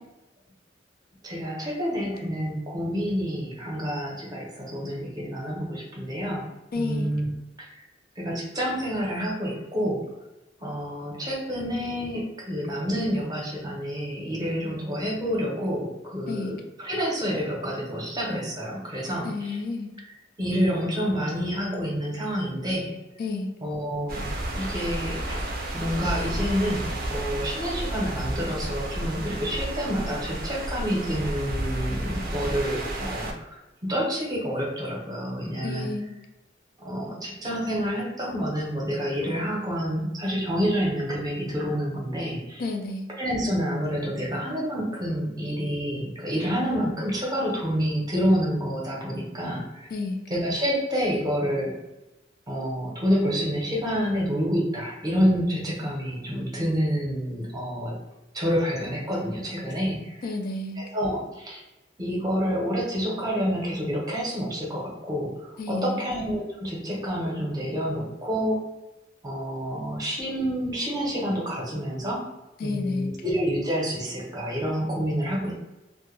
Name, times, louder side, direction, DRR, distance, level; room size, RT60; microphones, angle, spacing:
voice 1, 1.2-6.4 6.7-7.3 7.6-7.7 8.2-10.0 10.6-19.6 20.4-22.9 23.6-24.2 24.5-25.4 25.7-35.9 36.8-42.6 43.2-49.9 50.3-51.7 52.5-57.9 58.3-60.3 60.8-61.6 62.0-68.6 69.2-72.2 72.6-75.5, equal, 20° right, -3 dB, 0.7 m, -28 dB
voice 2, 6.7-7.1 16.3-16.5 19.2-19.9 23.2-23.5 35.6-36.1 42.6-43.0 49.9-50.2 60.2-60.8 65.6-66.1 72.6-73.1, left 3 dB, 55° left, 4 dB, 0.4 m, -30 dB
sound 1, 24.1-33.3, right 1 dB, 55° right, 0.4 m, -31 dB
2.2 x 2.1 x 3.1 m, 1.0 s
head